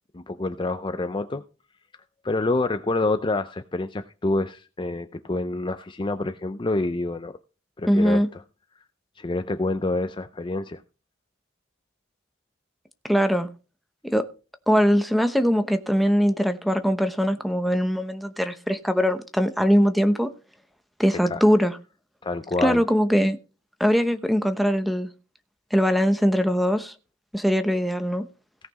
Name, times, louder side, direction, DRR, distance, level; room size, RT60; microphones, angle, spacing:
voice 1, 0.1-1.4 2.2-7.3 7.8-8.4 9.2-10.8 21.3-21.4 22.2-22.8, left 2 dB, 25° left, 0.5 m, -27 dB
voice 2, 7.9-8.3 13.1-13.5 14.1-14.3 14.7-20.3 21.0-21.8 22.6-23.4 23.8-25.1 25.7-26.9 27.3-28.2, equal, ahead, 0.8 m, -21 dB
17.0 x 5.8 x 4.1 m
head